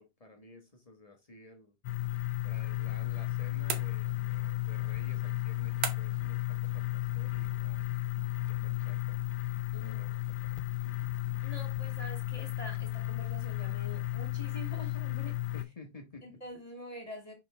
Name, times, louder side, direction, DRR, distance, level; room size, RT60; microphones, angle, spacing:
voice 1, 0.0-1.7 2.4-7.9 8.5-9.2 9.7-10.6 10.8-11.2 15.5-16.3, left 2 dB, 40° left, 0.5 m, -53 dB
sound 1, 1.8-15.6, left 17 dB, 85° left, 1.5 m, -34 dB
sound 2, 3.7-4.4 5.8-6.3, right 8 dB, 60° right, 1.4 m, -37 dB
voice 2, 9.7-10.2 11.4-15.4 16.2-17.3, left 1 dB, 15° left, 2.1 m, -46 dB
5.5 x 5.2 x 3.2 m
omnidirectional pair, 2.4 m